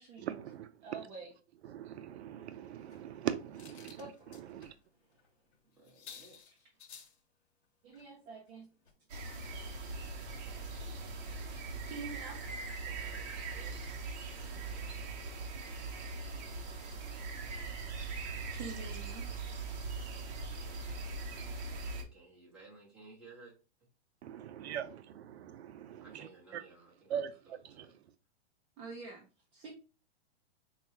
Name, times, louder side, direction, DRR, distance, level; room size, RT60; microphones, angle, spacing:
voice 1, 0.2-1.0 1.6-4.0 4.5-4.7 24.2-26.6 27.1-27.9, right 9 dB, 75° right, 0.5 m, -41 dB
voice 2, 0.8-1.3 4.0-4.4 7.8-8.7 11.3-13.2 14.5-14.9 15.7-16.1 18.5-19.3 28.8-29.3 29.5-29.7, right 4 dB, 20° right, 0.4 m, -48 dB
sound 1, 2.9-4.8 5.1-5.3 5.5-5.6 5.8-7.2 7.9-8.1 8.5-8.6 8.9-9.0, left 6 dB, 85° left, 1.0 m, -55 dB
voice 3, 5.6-6.4 12.8-13.9 14.3-15.2 21.8-23.5 26.0-27.2 27.7-28.0, right 3 dB, 5° right, 1.3 m, -57 dB
sound 2, 9.1-22.0, right 3 dB, 40° right, 0.8 m, -41 dB
4.4 x 2.3 x 2.9 m
hypercardioid pair, 150°, 33 cm